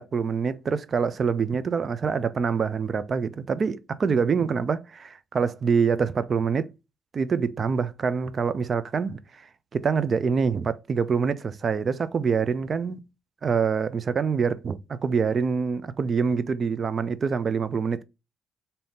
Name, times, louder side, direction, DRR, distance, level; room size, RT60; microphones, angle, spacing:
voice 1, 0.0-6.7 7.1-9.2 9.7-13.0 13.4-18.0, right 5 dB, 45° right, 0.5 m, -25 dB
3.5 x 2.8 x 4.1 m
cardioid pair, 90°, 0 cm